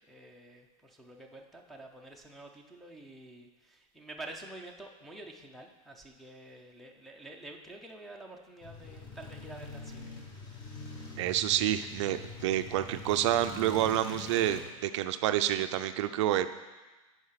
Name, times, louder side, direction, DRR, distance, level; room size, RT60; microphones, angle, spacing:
voice 1, 0.1-10.1, right 2 dB, ahead, -1 dB, 0.5 m, -48 dB
sound 1, 8.6-14.6, left 3 dB, 25° left, 1.1 m, -44 dB
voice 2, 11.2-16.5, right 12 dB, 55° right, 10 dB, 0.4 m, -28 dB
9.7 x 4.7 x 5.7 m, 1.2 s
supercardioid pair, 165°, 18 cm